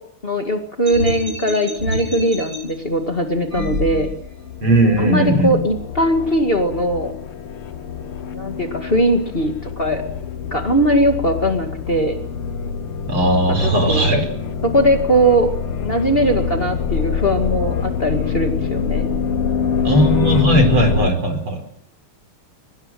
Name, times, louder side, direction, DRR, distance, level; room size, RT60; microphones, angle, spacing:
voice 1, 0.2-4.1 5.0-7.1 8.3-10.0 10.5-12.2 13.6-14.1 14.6-15.5 15.8-19.1, right 1 dB, 25° left, 4 dB, 2.2 m, -19 dB
sound 1, 0.8-2.6 3.5-4.4, right 1 dB, 45° right, 7.6 m, -27 dB
sound 2, 2.9-21.1, left 7 dB, 85° left, 2.3 m, -25 dB
voice 2, 4.6-5.5 13.1-14.2 19.8-21.6, right 1 dB, 75° right, 5 dB, 5.6 m, -17 dB
23.5 x 19.5 x 7.6 m, 0.74 s
omnidirectional pair, 2.4 m